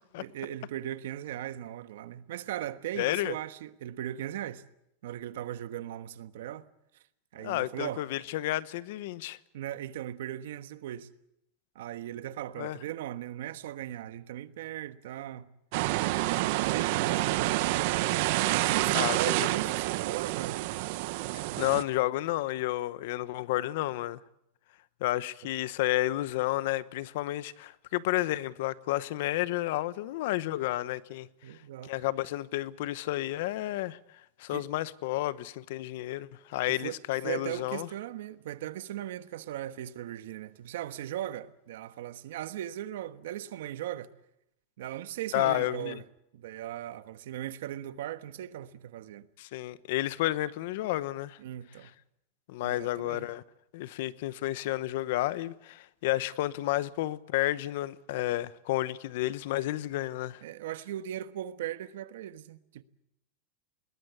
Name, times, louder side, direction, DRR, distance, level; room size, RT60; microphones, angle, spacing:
voice 1, 0.2-4.6 5.0-6.7 7.3-8.0 9.5-11.1 11.7-15.5 16.1-17.8 18.5-20.6 31.4-31.9 34.5-34.7 36.7-37.0 37.2-44.1 44.8-46.0 46.3-49.3 51.4-51.9 52.6-53.3 60.4-62.8, right 12 dB, 75° right, 1.3 m, -38 dB
voice 2, 2.9-3.3 7.4-9.4 12.6-12.8 18.9-19.5 21.6-24.2 25.0-31.3 31.8-34.0 34.4-37.9 45.3-46.0 49.4-51.4 52.5-53.4 53.7-60.4, left 16 dB, 60° left, 0.9 m, -31 dB
sound 1, 15.7-21.8, right 18 dB, 55° right, 0.9 m, -28 dB
21.5 x 20.0 x 8.2 m
supercardioid pair, 155°, 0 cm